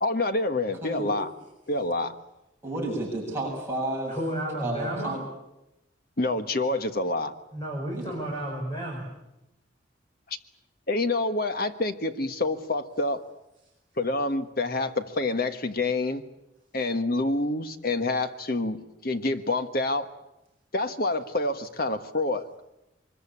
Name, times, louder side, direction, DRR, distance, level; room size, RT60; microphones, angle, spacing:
voice 1, 0.0-1.3 1.7-2.1 6.2-7.3 10.9-13.2 14.0-16.2 16.7-20.1 20.7-22.6, left 2 dB, 50° left, 9 dB, 1.5 m, -27 dB
voice 2, 0.8-1.2 2.6-4.2 4.6-5.2 7.9-8.2, right 1 dB, 15° right, -4 dB, 7.6 m, -31 dB
voice 3, 4.1-5.2 7.5-9.1, right 1 dB, 25° left, 0 dB, 5.3 m, -32 dB
24.0 x 21.5 x 8.7 m, 0.91 s
head